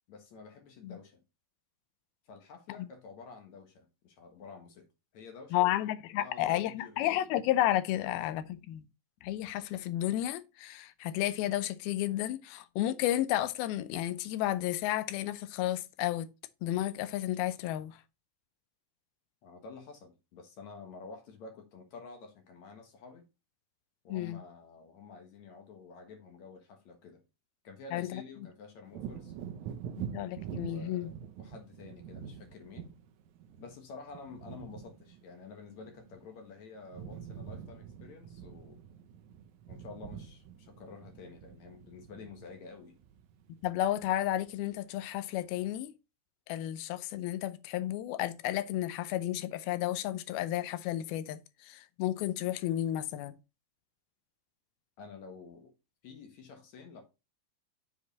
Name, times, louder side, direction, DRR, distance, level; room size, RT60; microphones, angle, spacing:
voice 1, 0.1-1.2 2.3-4.9 5.1-5.7 6.2-7.4 7.9-8.2 19.4-23.3 24.0-27.2 27.6-29.3 30.7-31.1 31.4-32.9 33.6-38.8 39.7-43.0 55.0-55.7 56.0-57.0, left 4 dB, 60° left, 2.4 m, -50 dB
voice 2, 5.5-8.9 9.2-16.3 16.6-18.0 24.1-24.4 27.9-28.2 30.0-31.1 43.6-45.9 46.5-53.4, left 13 dB, 85° left, 2.6 m, -32 dB
Wind / Thunder, 28.9-36.5 36.8-44.0 44.4-44.6, right 8 dB, 80° right, 1.7 m, -45 dB
7.2 x 5.0 x 4.1 m
omnidirectional pair, 4.3 m